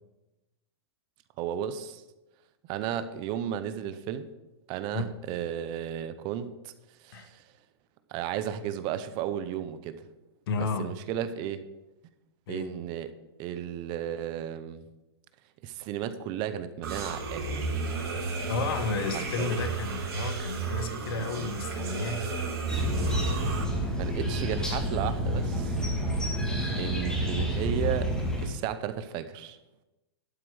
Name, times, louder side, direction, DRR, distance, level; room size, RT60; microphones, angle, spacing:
voice 1, 1.4-2.0 2.7-4.3 4.7-6.7 7.0-7.4 8.1-10.1 10.6-11.6 12.5-13.1 13.4-14.8 15.6-17.8 19.1-19.6 23.3-23.6 24.0-25.8 26.8-28.1 28.4-29.6, right 10 dB, 35° right, 0.7 m, -34 dB
voice 2, 10.5-11.0 12.5-12.8 18.5-22.3 26.4-26.6, left 4 dB, 60° left, 1.2 m, -32 dB
sound 1, 16.8-23.6, right 3 dB, 75° right, 3.1 m, -33 dB
sound 2, 22.7-28.5, equal, 5° left, 2.1 m, -29 dB
12.0 x 4.5 x 7.9 m
hypercardioid pair, 140°, 13 cm